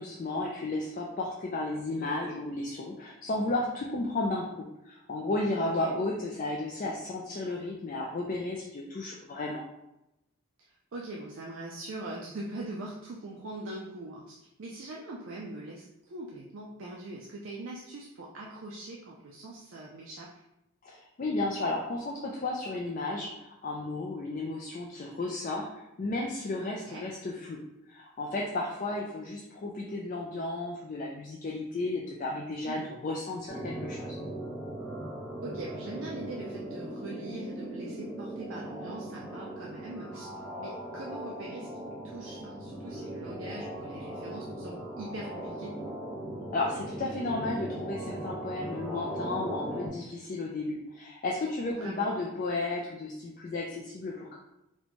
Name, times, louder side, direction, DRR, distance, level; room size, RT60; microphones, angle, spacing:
voice 1, 0.0-9.6 20.8-27.6 27.9-34.2 46.5-54.4, left 2 dB, 40° left, -2 dB, 0.3 m, -33 dB
voice 2, 5.6-5.9 10.9-20.3 26.6-27.1 32.7-32.9 35.4-40.3 40.6-45.7 51.7-52.1, right 2 dB, 65° right, -2 dB, 0.4 m, -42 dB
sound 1, 33.5-49.9, right 1 dB, ahead, 0.7 m, -39 dB
4.1 x 2.2 x 2.9 m, 0.89 s
head